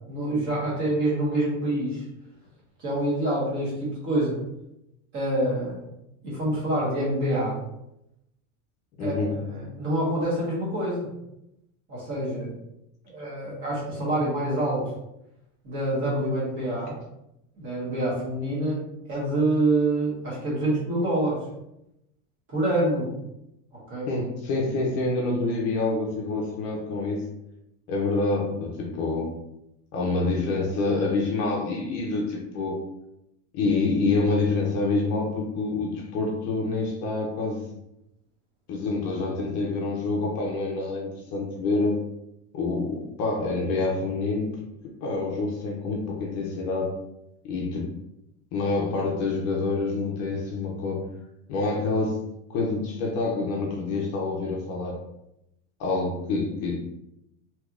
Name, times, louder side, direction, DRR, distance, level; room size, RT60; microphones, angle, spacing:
voice 1, 0.1-2.0 2.8-4.4 5.1-5.9 6.2-7.6 9.0-11.1 11.9-12.5 13.1-14.8 15.6-16.9 17.6-21.4 22.5-23.1 23.9-24.1, right 1 dB, 30° right, -6 dB, 1.4 m, -26 dB
voice 2, 9.0-9.4 24.1-27.3 27.9-29.3 29.9-32.8 33.5-37.7 38.7-42.0 42.5-44.7 45.0-46.9 47.4-47.9 48.5-51.1 51.5-55.0 55.8-56.8, left 3 dB, 45° left, -1 dB, 0.6 m, -27 dB
3.2 x 2.9 x 2.4 m, 0.85 s
cardioid pair, 165°, 38 cm